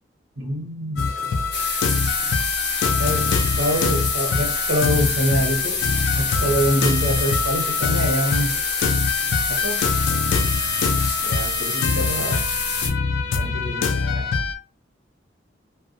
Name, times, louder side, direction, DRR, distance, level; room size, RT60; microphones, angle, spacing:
voice 1, 0.4-1.1 3.0-3.3 3.6-5.8 6.2-8.6 9.5-9.8 11.2-12.4 13.4-14.3, equal, 80° right, 1 dB, 1.0 m, -25 dB
sound 1, 1.0-14.5, left 4 dB, 85° left, 0.4 m, -24 dB
sound 2, 1.5-12.9, left 4 dB, 60° left, 0.9 m, -26 dB
2.5 x 2.2 x 2.5 m, 0.36 s
head